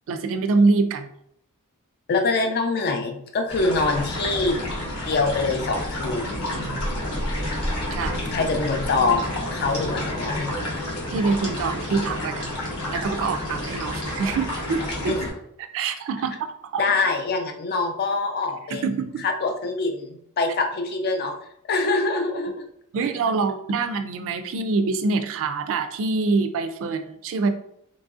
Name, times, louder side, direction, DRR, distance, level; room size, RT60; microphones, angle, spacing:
voice 1, 0.1-1.1 6.6-6.9 7.9-8.3 11.1-12.5 12.9-15.1 15.7-16.4 16.7-16.8 18.7-19.3 22.9-27.5, right 4 dB, 60° right, 8 dB, 0.3 m, -25 dB
voice 2, 2.1-4.6 5.0-6.4 8.3-10.5 15.1-15.3 16.8-18.8 19.2-21.3 21.7-22.6, left 3 dB, 45° left, 4 dB, 0.4 m, -24 dB
sound 1, 3.5-15.3, left 1 dB, 75° left, 1.0 m, -29 dB
2.9 x 2.5 x 2.3 m, 0.73 s
head